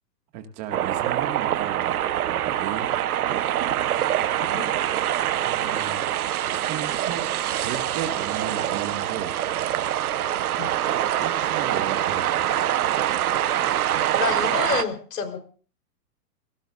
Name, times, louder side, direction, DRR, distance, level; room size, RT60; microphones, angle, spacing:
voice 1, 0.3-3.0 5.4-6.0 6.5-7.2 7.5-9.4 11.2-12.5, right 9 dB, 25° right, 5 dB, 2.2 m, -35 dB
sound 1, 0.7-14.8, right 12 dB, 65° right, 1.2 m, -25 dB
voice 2, 14.2-15.4, left 6 dB, 75° left, 5 dB, 4.4 m, -28 dB
29.0 x 18.5 x 2.6 m, 0.41 s
hypercardioid pair, 170°, 48 cm